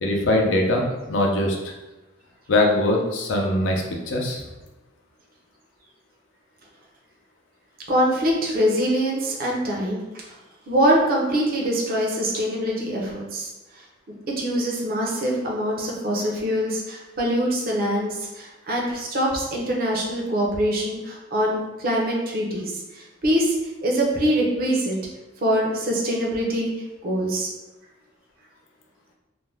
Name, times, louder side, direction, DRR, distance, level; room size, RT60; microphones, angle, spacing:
voice 1, 0.0-1.6 2.5-4.4, left 1 dB, 80° left, 0 dB, 0.6 m, -22 dB
voice 2, 7.9-10.2 10.7-13.5 14.4-23.6 23.8-25.0 25.4-26.7 27.0-27.5, equal, 50° right, -2 dB, 0.6 m, -24 dB
2.5 x 2.2 x 3.3 m, 1.1 s
head